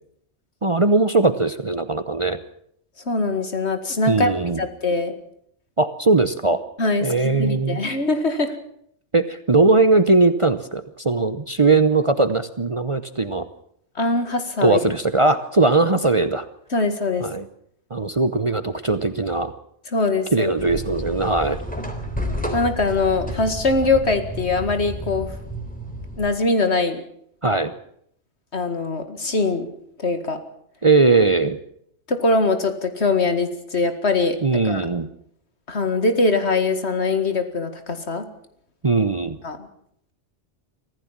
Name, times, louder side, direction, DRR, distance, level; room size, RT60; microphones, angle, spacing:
voice 1, 0.6-2.4 4.1-4.6 5.8-6.6 7.0-7.8 9.1-13.4 14.6-16.5 17.2-17.5 17.9-19.5 20.3-21.6 27.4-27.7 30.8-31.6 34.4-35.1 38.8-39.4, right 3 dB, 30° right, 11 dB, 0.8 m, -19 dB
voice 2, 3.1-5.1 6.8-8.5 14.0-14.8 16.7-17.3 19.9-20.5 22.5-25.3 26.2-27.0 28.5-29.7 30.0-30.4 32.1-34.9 35.7-38.3 39.4-39.7, left 3 dB, 65° left, 8 dB, 2.3 m, -22 dB
sound 1, 20.6-26.3, equal, 5° left, 3.7 m, -31 dB
24.5 x 15.5 x 7.4 m, 0.69 s
omnidirectional pair, 1.2 m